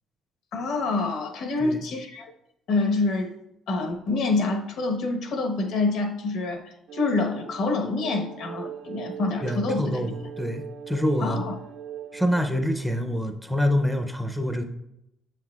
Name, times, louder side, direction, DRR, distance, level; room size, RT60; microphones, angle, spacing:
voice 1, 0.5-2.3 2.7-3.3 3.7-10.1 11.2-11.5, left 3 dB, 65° left, 4 dB, 1.1 m, -27 dB
sound 1, 6.9-12.4, right 9 dB, 70° right, 0.4 m, -40 dB
voice 2, 9.4-11.4 12.1-14.6, equal, ahead, 4 dB, 0.5 m, -26 dB
7.4 x 7.4 x 2.3 m, 0.83 s
cardioid pair, 150°, 0 cm